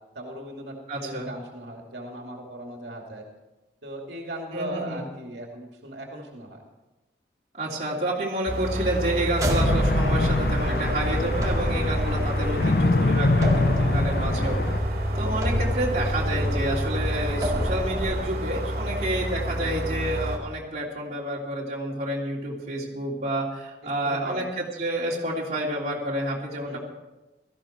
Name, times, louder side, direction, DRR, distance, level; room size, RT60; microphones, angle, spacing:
voice 1, 0.1-0.7 1.0-3.2 3.8-6.6 12.6-12.8 13.8-14.6 15.2-15.4 24.0-24.5 26.6-26.8, right 1 dB, 75° right, 1 dB, 2.5 m, -38 dB
voice 2, 0.9-1.3 4.5-5.0 7.5-14.6 15.1-26.8, right 1 dB, 40° right, -4 dB, 3.2 m, -29 dB
sound 1, 8.5-20.4, equal, 55° right, 3.0 m, -29 dB
sound 2, 9.3-18.1, equal, 20° right, 2.0 m, -29 dB
sound 3, 9.4-14.8, left 2 dB, 55° left, 0.5 m, -25 dB
17.0 x 14.0 x 4.4 m, 1.1 s
head